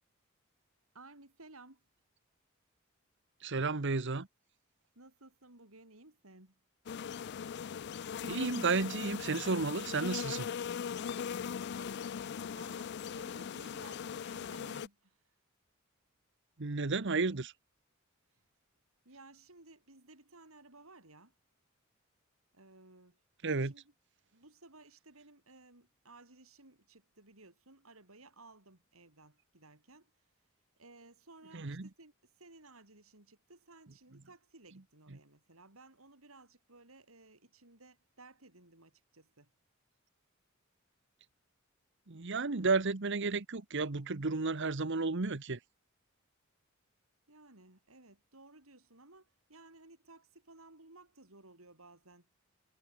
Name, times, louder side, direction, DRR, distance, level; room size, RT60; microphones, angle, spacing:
voice 1, 0.9-1.8 5.0-6.6 11.8-15.3 19.0-21.3 22.5-23.2 23.6-23.9 24.3-30.1 30.8-39.5 47.3-52.3, right 2 dB, 85° right, 5.8 m, -58 dB
voice 2, 3.4-4.3 8.2-10.5 16.6-17.5 23.4-23.7 31.5-31.9 42.1-45.6, right 3 dB, 60° right, 1.2 m, -32 dB
sound 1, 6.9-14.9, left 7 dB, 55° left, 0.4 m, -40 dB
head